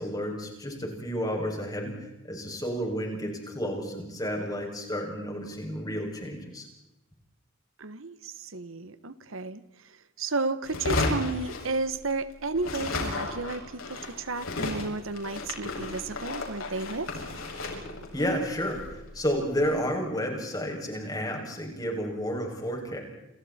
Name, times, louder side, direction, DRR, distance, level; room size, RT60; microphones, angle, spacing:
voice 1, 0.0-1.9 2.2-6.7 18.1-23.0, equal, 20° left, 0 dB, 6.9 m, -31 dB
voice 2, 7.8-17.1, right 3 dB, 80° right, 13 dB, 1.3 m, -33 dB
sound 1, 10.6-12.3 12.5-19.8, left 2 dB, 90° left, 6.9 m, -34 dB
30.0 x 27.5 x 4.4 m, 0.90 s
head